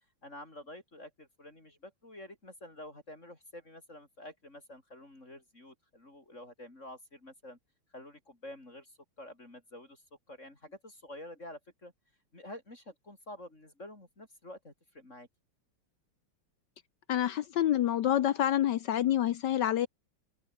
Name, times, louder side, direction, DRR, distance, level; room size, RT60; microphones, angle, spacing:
voice 1, 0.2-7.6 7.9-11.9 12.3-15.3, left 1 dB, 30° left, 4.8 m, -49 dB
voice 2, 17.1-19.9, left 11 dB, 65° left, 1.1 m, -27 dB
open air
omnidirectional pair, 2.4 m